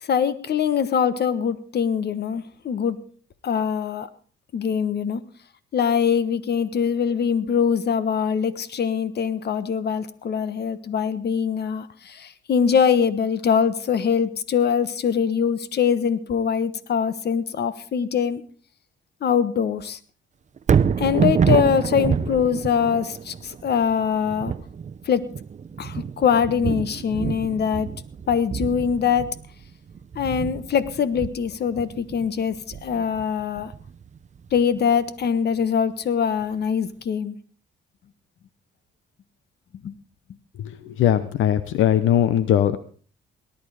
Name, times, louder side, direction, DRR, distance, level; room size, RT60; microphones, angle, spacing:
voice 1, 0.0-3.0 3.4-4.1 4.5-5.2 5.7-18.4 19.2-20.0 21.0-24.5 25.0-25.3 25.8-27.9 28.3-29.4 30.1-33.7 34.5-37.4 39.8-39.9, left 7 dB, 55° left, 15 dB, 1.3 m, -23 dB
Thunder, 20.6-34.8 35.2-35.3, right 7 dB, 35° right, 0.7 m, -27 dB
voice 2, 40.6-42.8, left 10 dB, 80° left, 14 dB, 0.8 m, -20 dB
18.5 x 11.5 x 5.0 m, 0.41 s
cardioid pair, 90°, 20 cm